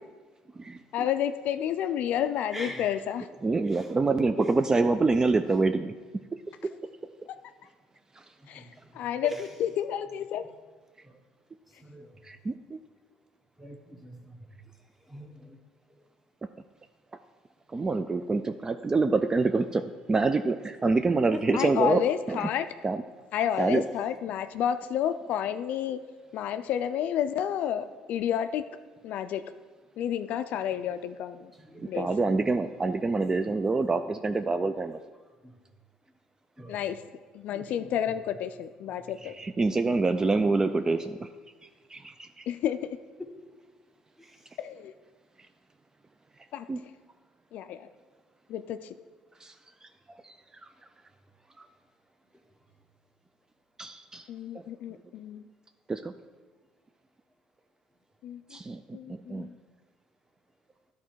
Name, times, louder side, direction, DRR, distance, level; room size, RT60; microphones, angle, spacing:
voice 1, 0.9-3.3 7.3-7.4 8.5-10.4 21.5-22.7 23.3-26.0 26.3-28.7 29.0-29.4 30.0-31.5 31.9-32.1 36.7-37.0 37.3-39.4 42.5-43.0 44.6-45.0 46.5-46.7 47.5-47.9 48.5-49.0 54.3-55.4 58.2-58.6 58.9-59.6, left 10 dB, 65° left, 11 dB, 0.3 m, -30 dB
voice 2, 2.5-3.0 3.5-3.9 8.4-8.7 9.2-9.4 11.0-11.1 11.8-12.1 13.6-14.5 15.1-15.6 21.3-21.4 31.6-31.9 35.4-35.5 36.6-36.8 37.5-37.9 44.2-44.4, right 1 dB, 5° right, 3 dB, 1.2 m, -42 dB
voice 3, 3.4-5.9 8.1-8.3 12.2-12.8 17.7-22.0 22.3-22.4 22.8-23.0 23.6-23.9 31.9-35.0 39.2-41.3 41.9-42.5 46.7-46.8 49.4-49.5 49.8-49.9 50.2-50.7 51.6-51.7 53.8-54.3 54.5-54.6 55.9-56.1 58.5-59.5, right 3 dB, 25° right, 9 dB, 0.3 m, -26 dB
10.5 x 4.2 x 4.6 m, 1.4 s
supercardioid pair, 70°, 3 cm